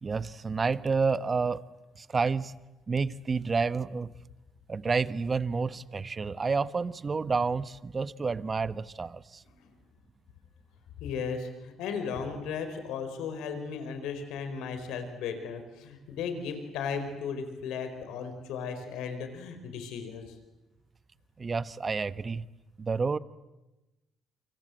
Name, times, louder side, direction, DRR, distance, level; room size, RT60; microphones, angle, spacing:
voice 1, 0.0-1.6 1.9-2.6 2.9-4.1 4.7-9.4 21.4-22.5 22.8-23.2, right 4 dB, 35° right, 15 dB, 1.1 m, -29 dB
voice 2, 11.0-20.3, left 6 dB, 80° left, 8 dB, 4.7 m, -36 dB
30.0 x 25.0 x 8.0 m, 1.0 s
supercardioid pair, 65°, 0 cm